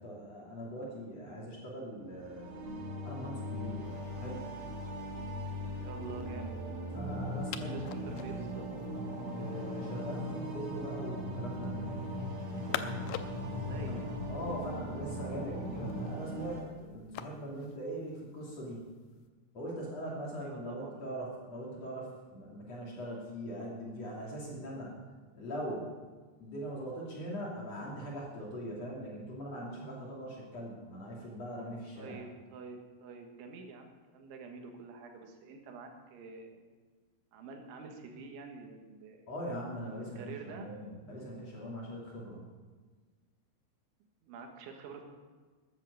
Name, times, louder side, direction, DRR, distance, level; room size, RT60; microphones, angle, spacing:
voice 1, 0.0-2.6 3.0-4.5 6.9-7.7 9.3-11.8 13.9-14.0 14.3-18.9 19.5-24.9 25.3-25.9 26.4-32.2 39.3-42.4, equal, 40° left, -4 dB, 3.3 m, -41 dB
sound 1, 2.0-16.6, equal, 35° right, 5.1 m, -41 dB
sound 2, 3.8-19.3, left 11 dB, 80° left, 2.5 m, -48 dB
voice 2, 5.8-6.6 7.5-8.7 12.5-13.1 13.7-14.1 20.4-21.0 32.0-36.6 37.3-39.3 40.2-40.7 44.2-45.0, right 4 dB, 80° right, 3 dB, 3.9 m, -47 dB
sound 3, 6.9-16.1, equal, ahead, 2.2 m, -41 dB
13.5 x 10.5 x 7.0 m, 1.4 s
omnidirectional pair, 5.4 m